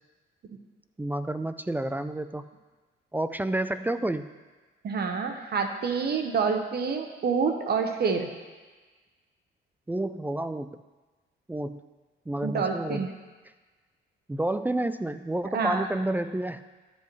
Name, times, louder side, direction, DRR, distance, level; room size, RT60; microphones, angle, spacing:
voice 1, 1.0-2.4 3.1-4.3 9.9-10.8 11.5-11.8 12.3-13.1 14.3-16.6, right 1 dB, 10° right, 11 dB, 0.3 m, -30 dB
voice 2, 4.8-8.3 12.4-13.1 15.5-15.9, right 5 dB, 55° right, 5 dB, 1.0 m, -27 dB
13.0 x 5.4 x 3.1 m, 1.3 s
cardioid pair, 90°, 20 cm